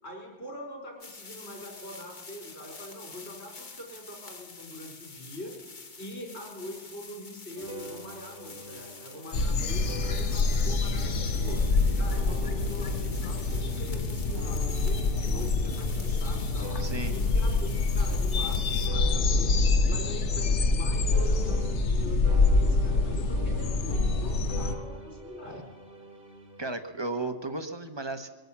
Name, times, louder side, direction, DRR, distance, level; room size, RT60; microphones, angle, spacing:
voice 1, 0.0-5.5 6.0-11.6 11.9-16.7 17.1-25.7, left 1 dB, 70° left, 0 dB, 4.6 m, -43 dB
sound 1, 1.0-18.9, left 4 dB, 45° left, 1.3 m, -47 dB
sound 2, 7.6-22.0 22.3-26.7, right 2 dB, 50° right, 1.7 m, -45 dB
sound 3, 9.3-24.7, left 3 dB, 85° left, 1.2 m, -26 dB
voice 2, 16.8-17.2 26.6-28.3, right 2 dB, 25° right, 8 dB, 0.9 m, -34 dB
22.0 x 9.0 x 7.2 m, 1.3 s
omnidirectional pair, 1.2 m